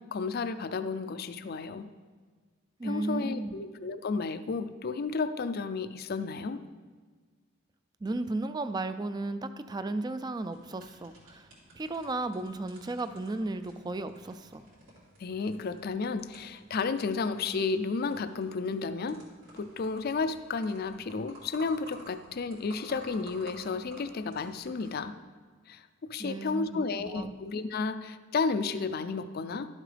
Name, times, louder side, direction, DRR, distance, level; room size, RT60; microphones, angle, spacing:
voice 1, 0.0-1.9 2.8-6.6 15.2-19.2 19.5-25.1 25.7-29.7, left 4 dB, 45° left, 11 dB, 0.4 m, -32 dB
voice 2, 2.8-3.5 8.0-11.5 11.8-14.6 26.2-27.3, right 2 dB, 20° right, 11 dB, 0.3 m, -34 dB
sound 1, 10.4-25.0, right 1 dB, 75° right, 3.0 m, -54 dB
11.5 x 7.3 x 3.4 m, 1.5 s
head